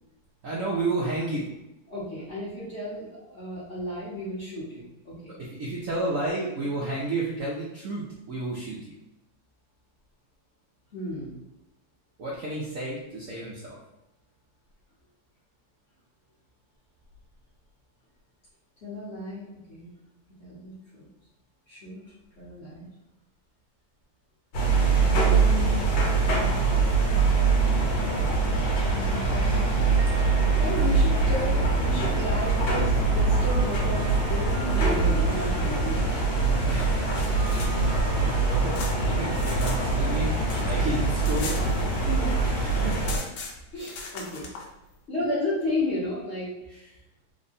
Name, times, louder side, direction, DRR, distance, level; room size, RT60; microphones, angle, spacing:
voice 1, 0.4-1.5 5.3-8.9 12.2-13.8 36.6-37.3 38.1-41.9 42.5-43.0 46.7-46.9, right 2 dB, 70° right, -5 dB, 0.8 m, -32 dB
voice 2, 1.9-5.4 10.9-11.4 18.8-19.9 20.4-21.1 21.7-22.9 25.2-25.8 30.0-30.1 30.6-36.1 42.0-42.3 43.7-44.5 45.1-46.5, left 1 dB, 45° left, -8 dB, 1.0 m, -33 dB
sound 1, 24.5-43.2, right 3 dB, 65° left, 1.5 m, -23 dB
sound 2, 29.1-41.4, right 3 dB, 85° right, 1.3 m, -42 dB
sound 3, 37.1-39.8 40.1-42.3 42.5-42.6 42.8-44.7, left 4 dB, 80° left, 1.4 m, -40 dB
3.5 x 2.2 x 3.9 m, 0.92 s
omnidirectional pair, 2.1 m